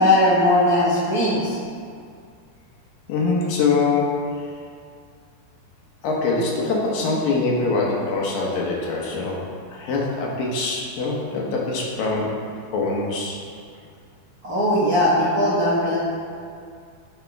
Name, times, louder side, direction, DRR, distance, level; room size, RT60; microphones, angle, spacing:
voice 1, 0.0-1.6 14.4-16.0, left 1 dB, 75° right, -10 dB, 0.8 m, -19 dB
voice 2, 3.1-4.5 6.0-9.4 9.7-12.3 12.7-13.4, left 3 dB, 70° left, -3 dB, 2.6 m, -23 dB
14.5 x 5.9 x 3.4 m, 2.2 s
omnidirectional pair, 4.8 m